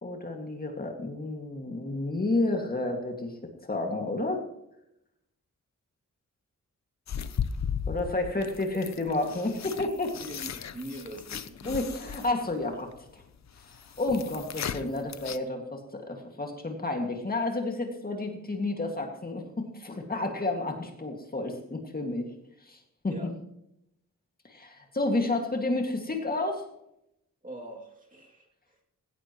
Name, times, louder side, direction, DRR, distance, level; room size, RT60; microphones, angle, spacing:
voice 1, 0.0-3.3 3.6-4.4 7.9-10.1 11.6-13.2 14.0-22.3 22.7-22.8 23.0-23.1 24.5-26.6, left 2 dB, 30° left, 2 dB, 2.1 m, -31 dB
sound 1, 7.1-15.4, left 7 dB, 65° left, 0.7 m, -36 dB
voice 2, 10.2-11.9 23.1-23.3 27.4-28.8, right 1 dB, 25° right, -1 dB, 2.6 m, -43 dB
18.5 x 17.5 x 3.1 m, 0.81 s
wide cardioid pair, 150°, 30 cm